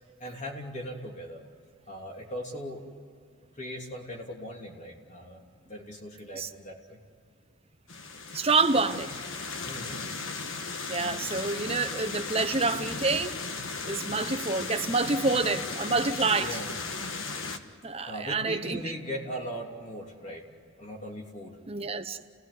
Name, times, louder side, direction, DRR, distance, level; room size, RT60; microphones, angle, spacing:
voice 1, 0.2-1.4 1.9-2.9 3.6-7.0 9.6-10.1 16.4-16.7 18.1-20.4 20.8-21.6, equal, 35° left, 3.2 m, -39 dB
sound 1, 7.9-17.6, left 4 dB, 60° left, 1.5 m, -36 dB
voice 2, 8.3-9.1 10.9-13.3 13.9-16.6 17.8-18.8 21.7-22.2, right 3 dB, 25° right, 1.0 m, -27 dB
30.0 x 17.5 x 9.7 m
head